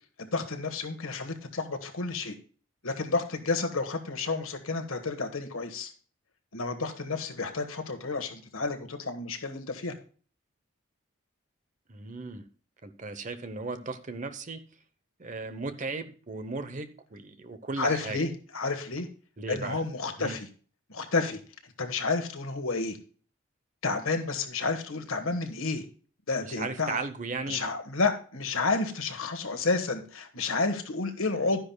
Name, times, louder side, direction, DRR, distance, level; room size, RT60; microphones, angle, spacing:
voice 1, 0.2-2.3 2.8-5.9 6.5-9.9 17.8-19.1 19.5-20.5 20.9-21.4 21.8-23.0 23.8-25.8 26.3-27.0 27.5-31.6, left 3 dB, 80° left, 6 dB, 1.5 m, -30 dB
voice 2, 11.9-12.5 12.8-14.6 15.2-18.2 19.4-19.8 20.2-20.4 26.4-27.6, right 3 dB, 35° right, 10 dB, 0.8 m, -36 dB
11.5 x 10.0 x 2.3 m, 0.41 s
head